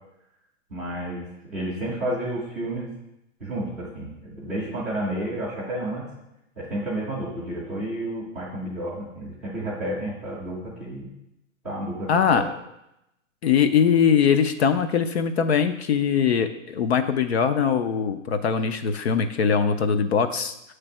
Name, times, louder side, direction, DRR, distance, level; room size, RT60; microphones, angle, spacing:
voice 1, 0.7-2.9 3.4-6.1 6.6-11.1 11.6-12.4, right 1 dB, ahead, -13 dB, 0.5 m, -31 dB
voice 2, 12.1-12.5 13.4-20.5, left 7 dB, 55° left, 9 dB, 0.5 m, -21 dB
6.9 x 3.3 x 5.9 m, 0.86 s
hypercardioid pair, 170°, 38 cm